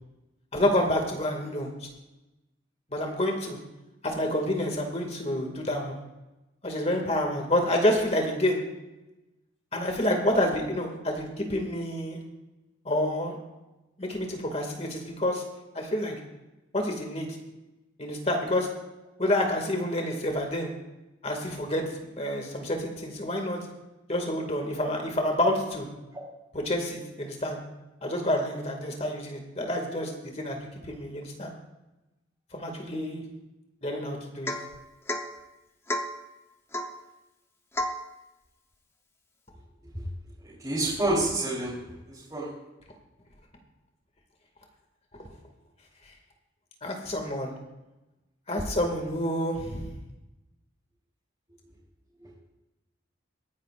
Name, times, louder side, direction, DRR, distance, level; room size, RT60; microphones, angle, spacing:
voice 1, 0.5-1.7 2.9-3.6 4.0-6.0 6.6-8.6 9.7-12.2 12.8-13.4 14.0-15.4 15.7-16.2 16.7-17.3 18.0-18.7 19.2-20.7 21.2-21.8 22.1-23.7 24.1-25.9 26.5-27.6 28.0-31.5 32.5-33.2 33.8-34.5 46.8-47.5 48.5-49.9, left 1 dB, 35° left, 2 dB, 2.2 m, -28 dB
Domestic sounds home sounds / Chink clink / Drip, 34.5-34.8 35.1-35.3 35.9-36.2 36.7-37.0 37.7-38.1, left 1 dB, 15° left, 0.8 m, -31 dB
voice 2, 40.4-41.7 42.1-42.5 52.2-52.3, right 2 dB, 20° right, -10 dB, 3.6 m, -28 dB
23.0 x 10.0 x 2.5 m, 1.0 s
head